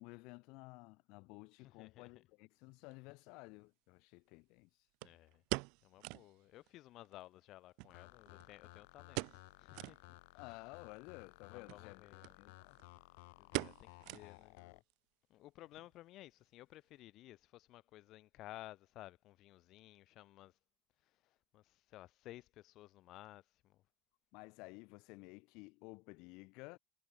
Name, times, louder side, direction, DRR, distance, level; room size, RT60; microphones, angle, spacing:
voice 1, 0.0-4.7 10.3-12.8 24.3-26.8, left 27 dB, 60° left, 0.7 m, -54 dB
voice 2, 1.6-2.1 5.0-5.4 5.8-9.2 9.6-10.0 11.5-12.4 13.4-14.8 15.3-20.5 21.2-23.8, left 16 dB, 40° left, 1.1 m, -56 dB
sound 1, 2.9-3.0 5.0-6.3 6.7-6.8 7.0-7.1 7.8-8.6 9.1-9.5 9.7-10.0 10.5-10.6 11.6-11.8 12.2-12.3 12.6-13.0 13.5-14.6 14.9-15.0 15.6-15.9 16.2-16.3, right 30 dB, 60° right, 0.4 m, -42 dB
sound 2, 7.9-14.8, left 26 dB, 85° left, 2.4 m, -58 dB
cardioid pair, 170°, 0 cm